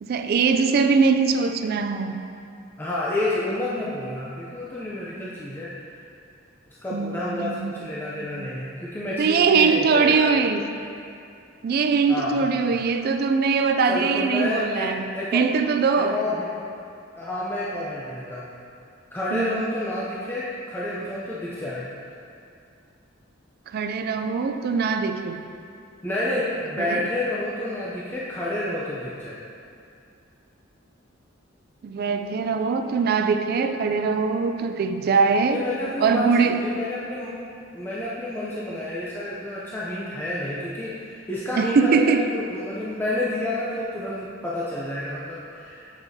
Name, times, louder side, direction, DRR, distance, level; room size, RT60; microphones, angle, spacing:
voice 1, 0.0-2.2 3.8-3.9 6.9-7.7 8.4-8.5 9.2-10.7 11.6-15.0 15.3-16.2 19.3-19.7 23.7-25.4 26.8-27.1 31.8-35.6 36.0-36.6 41.6-42.3, right 5 dB, 50° right, 7 dB, 0.3 m, -22 dB
voice 2, 2.8-6.1 6.8-10.4 12.1-12.8 13.9-15.5 16.0-16.5 17.2-18.5 19.1-21.9 26.0-29.4 35.5-37.4 37.7-45.9, left 1 dB, 10° left, -7 dB, 0.5 m, -29 dB
7.0 x 5.8 x 2.7 m, 2.5 s
head